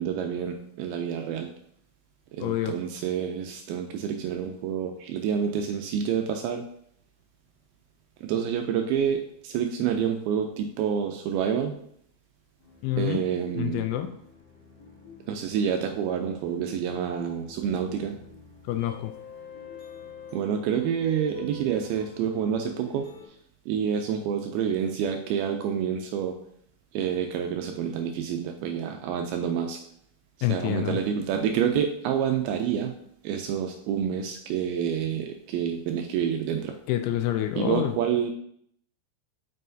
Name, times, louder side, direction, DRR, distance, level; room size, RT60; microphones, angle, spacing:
voice 1, 0.0-1.5 2.3-6.6 8.2-11.8 13.0-13.8 15.3-18.2 20.3-23.1 23.7-26.4 26.9-29.8 30.5-32.9 33.2-36.7 37.6-38.3, right 8 dB, 85° right, 5 dB, 2.2 m, -28 dB
voice 2, 2.4-2.8 12.8-13.2 13.6-14.1 18.7-19.1 30.4-31.0 36.9-37.9, left 13 dB, 80° left, 7 dB, 2.4 m, -27 dB
sound 1, 12.6-23.3, left 1 dB, 30° left, 1.8 m, -47 dB
7.5 x 5.5 x 2.7 m, 0.68 s
omnidirectional pair, 4.7 m